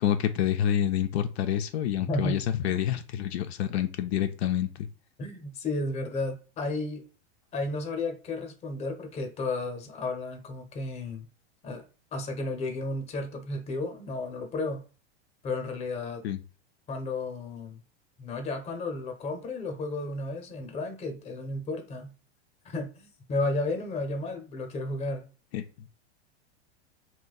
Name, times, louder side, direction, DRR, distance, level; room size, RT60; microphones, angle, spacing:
voice 1, 0.0-4.9 16.2-16.4 25.5-25.6, left 10 dB, 75° left, 0.5 m, -28 dB
voice 2, 2.1-2.4 5.2-7.0 7.5-11.3 11.6-11.8 12.1-14.8 15.4-16.2 16.9-17.8 18.2-22.1 22.6-25.3, left 2 dB, 20° left, 0.7 m, -33 dB
2.6 x 2.2 x 4.0 m
supercardioid pair, 135°, 32 cm